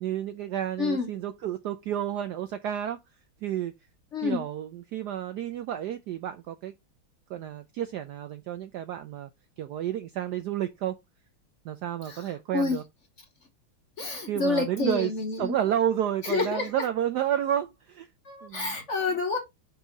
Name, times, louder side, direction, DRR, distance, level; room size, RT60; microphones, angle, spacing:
voice 1, 0.0-3.0 3.4-3.7 4.2-6.7 7.3-9.3 9.6-11.0 11.6-12.8 14.3-15.1 15.4-18.1 18.4-18.8 19.1-19.2, right 10 dB, 75° right, 0.9 m, -30 dB
voice 2, 4.1-4.4 12.1-12.2 12.5-12.8 14.0-15.5 16.2-16.7 18.3-19.4, left 4 dB, 45° left, 1.1 m, -28 dB
5.5 x 4.5 x 3.8 m
omnidirectional pair, 2.3 m